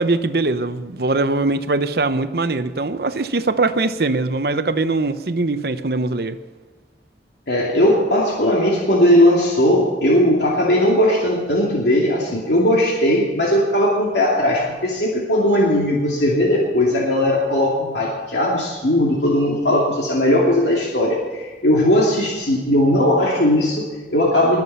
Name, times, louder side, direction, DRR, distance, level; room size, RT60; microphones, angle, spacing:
voice 1, 0.0-6.4, right 3 dB, 60° right, 11 dB, 0.8 m, -21 dB
voice 2, 7.5-24.6, left 1 dB, 80° left, -3 dB, 2.6 m, -18 dB
21.0 x 7.6 x 5.6 m, 1.4 s
head